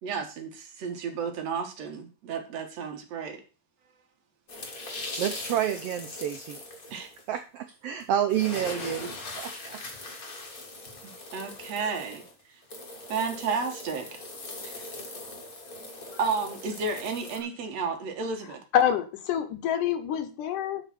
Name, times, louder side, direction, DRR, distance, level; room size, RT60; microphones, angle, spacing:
voice 1, 0.0-3.4 6.9-7.1 11.0-12.2 12.5-12.6 13.1-14.2 14.6-14.8 16.2-18.6, right 5 dB, 60° right, 4 dB, 2.5 m, -32 dB
sound 1, 4.5-7.2 8.0-8.1 8.3-17.4, left 2 dB, 30° left, 1.9 m, -40 dB
voice 2, 5.2-6.6 7.3-9.8, right 10 dB, 85° right, 7 dB, 1.3 m, -29 dB
voice 3, 18.7-20.8, left 10 dB, 85° left, 9 dB, 2.7 m, -26 dB
11.0 x 4.8 x 6.0 m, 0.34 s
omnidirectional pair, 3.6 m